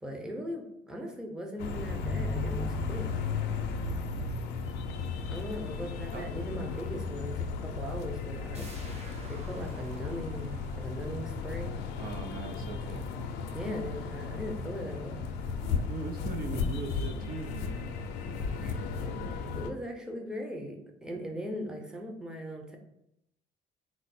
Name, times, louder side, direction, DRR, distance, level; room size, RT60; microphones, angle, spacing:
voice 1, 0.0-3.1 5.3-11.7 13.5-15.3 18.6-22.8, equal, 5° right, 2 dB, 0.7 m, -39 dB
sound 1, 1.6-19.7, left 4 dB, 90° left, 0.5 m, -35 dB
sound 2, 8.5-14.0 14.4-14.5, right 1 dB, 40° right, 1.0 m, -53 dB
voice 2, 12.0-13.1 15.6-17.9, right 4 dB, 60° right, 5 dB, 0.5 m, -39 dB
4.3 x 2.0 x 4.1 m, 0.81 s
cardioid pair, 110°, 17 cm